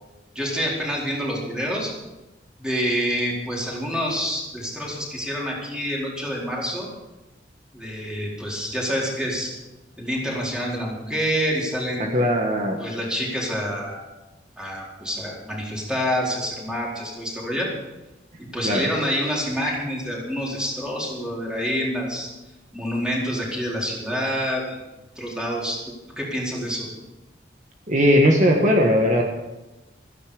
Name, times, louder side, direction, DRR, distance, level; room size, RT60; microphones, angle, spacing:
voice 1, 0.3-1.9 2.6-6.9 7.7-9.5 10.0-12.1 12.8-14.0 14.6-17.7 18.5-22.3 22.7-24.8 25.2-25.8 26.2-26.9, equal, 5° right, -4 dB, 4.4 m, -27 dB
voice 2, 12.0-12.8 18.6-18.9 27.9-29.2, equal, 45° right, 1 dB, 1.6 m, -18 dB
16.5 x 14.0 x 5.1 m, 1.0 s
head